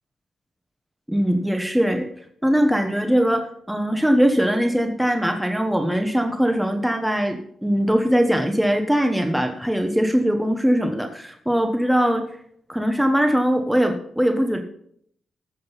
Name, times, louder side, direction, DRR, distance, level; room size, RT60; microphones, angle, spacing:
voice 1, 1.1-2.1 2.4-12.2 12.7-14.6, equal, 5° right, 5 dB, 1.0 m, -21 dB
13.5 x 7.6 x 5.6 m, 0.66 s
wide cardioid pair, 140°, 0 cm